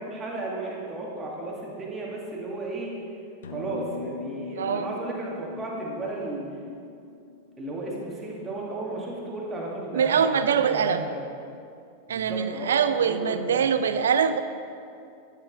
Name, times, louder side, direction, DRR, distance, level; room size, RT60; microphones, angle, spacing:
voice 1, 0.0-2.9 3.5-6.6 7.6-11.3 12.1-13.7, right 2 dB, 20° right, -3 dB, 2.0 m, -34 dB
sound 1, 3.4-8.0, left 6 dB, 60° left, 0.7 m, -41 dB
voice 2, 4.5-4.9 9.9-11.0 12.1-14.4, right 7 dB, 65° right, 11 dB, 0.5 m, -23 dB
11.5 x 7.1 x 4.0 m, 2.5 s
figure-of-eight pair, 90°, 0 cm